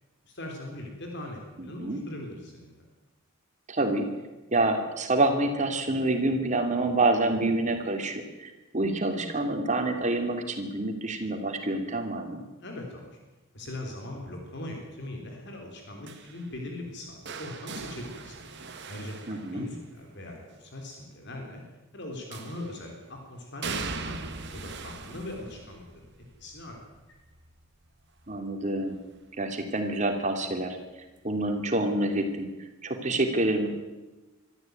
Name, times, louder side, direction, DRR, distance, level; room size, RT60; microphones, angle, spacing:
voice 1, 0.2-2.8 12.6-13.1 13.5-18.4 18.9-21.6 21.9-24.2 24.5-25.8 26.4-26.8, left 1 dB, 55° left, 1 dB, 3.6 m, -40 dB
voice 2, 1.6-2.0 3.7-4.1 4.5-12.4 19.3-19.7 28.3-29.0 29.4-30.8 31.2-32.5 32.8-33.7, right 2 dB, 35° right, 5 dB, 3.0 m, -27 dB
sound 1, 16.1-20.1 22.3-22.9 23.6-29.4 29.8-30.2 31.4-31.5, right 4 dB, 55° right, 2.1 m, -41 dB
23.5 x 13.5 x 9.2 m, 1.1 s
head